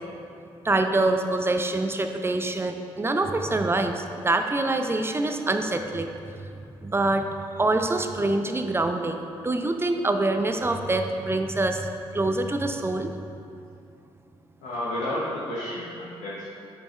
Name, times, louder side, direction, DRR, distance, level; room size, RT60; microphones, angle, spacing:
voice 1, 0.6-6.1 6.6-7.3 7.6-13.1, right 2 dB, 20° right, 6 dB, 0.6 m, -25 dB
voice 2, 14.6-16.5, left 1 dB, 80° left, -8 dB, 1.0 m, -31 dB
7.2 x 5.2 x 3.3 m, 2.6 s
hypercardioid pair, 45°, 12 cm